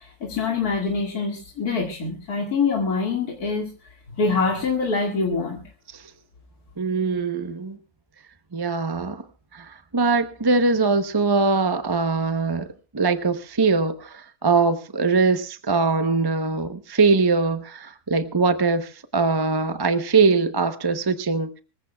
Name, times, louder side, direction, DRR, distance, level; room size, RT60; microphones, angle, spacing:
voice 1, 0.0-5.6, left 4 dB, 80° left, 0 dB, 2.6 m, -25 dB
voice 2, 6.8-7.8 8.5-9.2 9.5-12.7 12.9-21.6, right 4 dB, 25° right, 9 dB, 0.6 m, -22 dB
25.5 x 15.0 x 2.3 m, 0.32 s
omnidirectional pair, 1.6 m